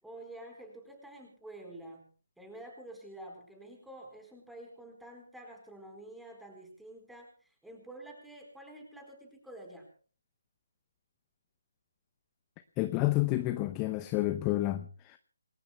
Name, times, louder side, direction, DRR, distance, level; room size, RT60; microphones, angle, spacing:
voice 1, 0.0-2.1 2.4-9.9, right 1 dB, ahead, 2 dB, 4.3 m, -49 dB
voice 2, 12.8-15.2, left 17 dB, 15° left, 11 dB, 0.7 m, -30 dB
27.5 x 20.5 x 2.3 m, 0.41 s
figure-of-eight pair, 145°, 0 cm